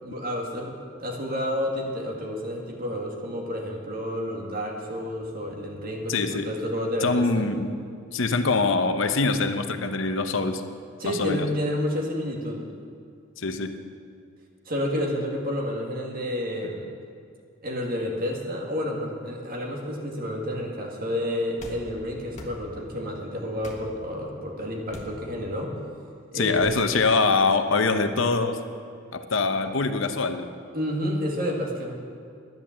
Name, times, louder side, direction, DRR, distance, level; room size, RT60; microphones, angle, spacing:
voice 1, 0.0-0.7 1.0-7.5 11.0-12.7 14.7-16.9 17.6-25.7 26.3-26.9 30.7-32.0, equal, 45° right, 0 dB, 2.1 m, -30 dB
voice 2, 6.1-6.5 7.0-7.7 8.1-10.6 11.0-11.5 13.4-13.8 26.3-28.6 29.1-30.5, left 3 dB, 65° left, 8 dB, 0.8 m, -24 dB
sound 1, 21.6-21.8 22.3-22.6 23.6-23.8 24.9-25.2 26.6-26.8, left 1 dB, 35° left, 1.4 m, -41 dB
11.0 x 10.5 x 7.4 m, 2.3 s
head